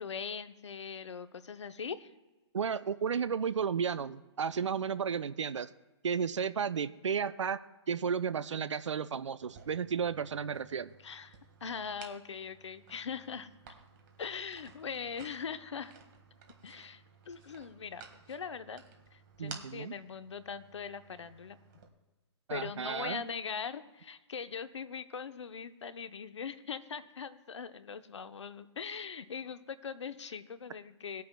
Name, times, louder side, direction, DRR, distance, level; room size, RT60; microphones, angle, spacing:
voice 1, 0.0-2.1 11.0-13.5 14.2-15.9 16.6-18.8 19.1-21.6 22.5-31.2, left 6 dB, 75° left, 11 dB, 0.8 m, -41 dB
voice 2, 2.5-5.7 6.0-7.6 7.9-10.9 19.4-19.9 22.5-23.2, right 6 dB, 80° right, 15 dB, 0.4 m, -33 dB
sound 1, 9.4-21.9, right 6 dB, 45° right, 1.8 m, -55 dB
19.5 x 9.4 x 2.3 m, 1.2 s
figure-of-eight pair, 125°, 15 cm